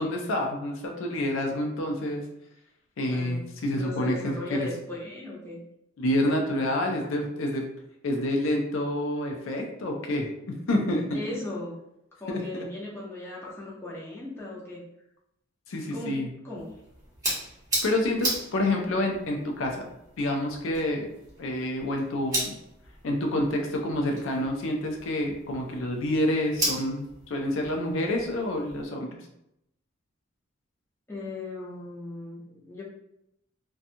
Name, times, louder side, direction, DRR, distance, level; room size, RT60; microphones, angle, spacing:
voice 1, 0.0-2.2 3.0-4.7 6.0-7.7 8.0-11.2 12.3-12.7 15.7-16.3 17.8-19.8 20.2-21.1 21.4-22.5 23.0-29.1, left 1 dB, 65° left, 1 dB, 0.4 m, -28 dB
voice 2, 3.0-3.4 3.8-5.6 11.1-11.7 12.2-14.8 15.9-16.1 16.4-16.7 31.1-32.8, left 2 dB, 10° left, -6 dB, 0.6 m, -37 dB
sound 1, 16.5-28.8, right 1 dB, 15° right, 1.0 m, -36 dB
2.8 x 2.2 x 2.5 m, 0.82 s
head